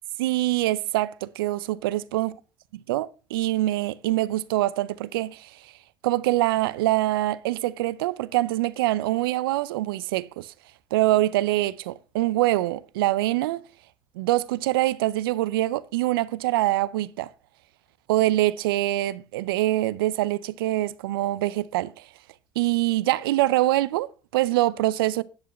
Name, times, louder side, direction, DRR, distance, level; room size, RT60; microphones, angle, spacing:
voice 1, 0.2-2.3 2.9-5.5 6.0-10.5 10.9-13.6 14.2-17.3 18.1-22.0 22.6-25.2, right 16 dB, 80° right, 0.5 m, -24 dB
10.5 x 7.6 x 4.2 m
hypercardioid pair, 70°, 12 cm